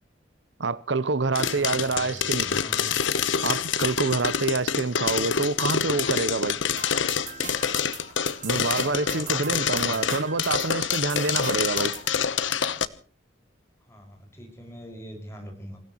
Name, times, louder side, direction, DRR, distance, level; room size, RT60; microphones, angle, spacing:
voice 1, 0.6-2.4 3.4-6.6 8.4-11.9, right 3 dB, 75° right, 0.9 m, -27 dB
sound 1, 1.3-12.8, left 7 dB, 85° left, 1.0 m, -26 dB
voice 2, 1.3-2.9 8.6-10.2 13.8-15.8, equal, 15° left, 5.8 m, -43 dB
sound 2, 6.8-12.1, right 6 dB, 45° right, 3.4 m, -40 dB
28.0 x 16.0 x 3.1 m
head